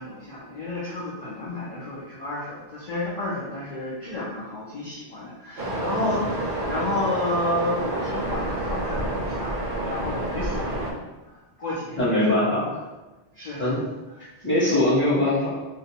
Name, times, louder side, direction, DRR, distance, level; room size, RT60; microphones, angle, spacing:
voice 1, 0.0-9.5 9.8-10.8 11.3-12.5 13.3-13.7, left 1 dB, 50° left, -7 dB, 0.6 m, -31 dB
Waves surf, 5.6-10.9, right 1 dB, 60° right, 0.6 m, -29 dB
voice 2, 12.0-12.8 13.6-13.8 14.4-15.6, left 1 dB, 10° left, -11 dB, 1.0 m, -21 dB
2.6 x 2.1 x 2.6 m, 1.1 s
omnidirectional pair, 1.1 m